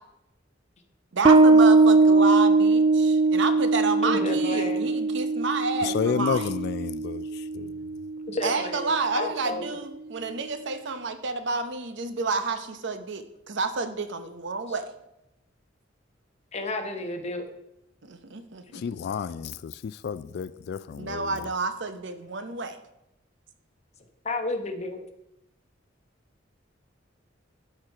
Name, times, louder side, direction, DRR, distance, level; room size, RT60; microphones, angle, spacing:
voice 1, 1.1-6.5 8.4-14.9 18.0-18.8 21.0-22.8, right 4 dB, 65° right, 9 dB, 0.8 m, -30 dB
Bass guitar, 1.2-8.4, right 3 dB, 30° right, 0.4 m, -21 dB
voice 2, 4.0-4.9 8.3-9.6 16.5-17.5 24.2-25.0, left 2 dB, 35° left, 5 dB, 1.0 m, -31 dB
voice 3, 5.8-7.7 18.7-21.3, left 6 dB, 55° left, 14 dB, 0.3 m, -31 dB
12.5 x 4.4 x 4.7 m, 0.86 s
head